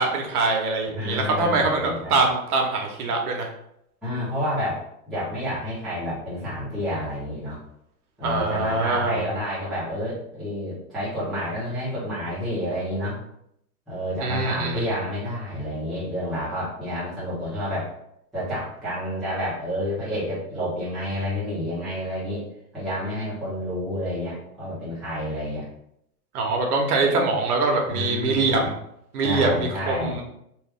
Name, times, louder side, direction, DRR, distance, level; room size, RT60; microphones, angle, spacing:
voice 1, 0.0-3.5 8.2-9.2 14.2-14.8 26.3-28.7 29.1-30.2, right 3 dB, 80° right, 2 dB, 1.0 m, -23 dB
voice 2, 0.9-2.2 4.0-7.6 8.2-13.2 13.9-17.9 18.3-22.5 22.7-25.7 27.9-28.7 29.2-30.2, equal, ahead, -13 dB, 0.8 m, -29 dB
3.1 x 2.3 x 3.4 m, 0.76 s
supercardioid pair, 170°, 45 cm